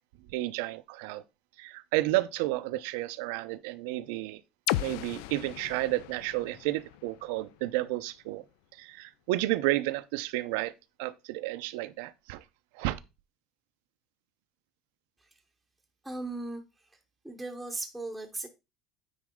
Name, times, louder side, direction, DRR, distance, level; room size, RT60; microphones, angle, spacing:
voice 1, 0.3-1.2 1.6-4.4 4.8-8.4 8.8-10.7 11.0-12.4 12.7-13.0, right 17 dB, 90° right, 0.7 m, -31 dB
sound 1, 4.7-8.5, left 16 dB, 85° left, 0.3 m, -37 dB
voice 2, 16.0-17.0 17.2-18.5, right 2 dB, ahead, 0.8 m, -38 dB
9.5 x 4.2 x 3.7 m
cardioid pair, 155°, 0 cm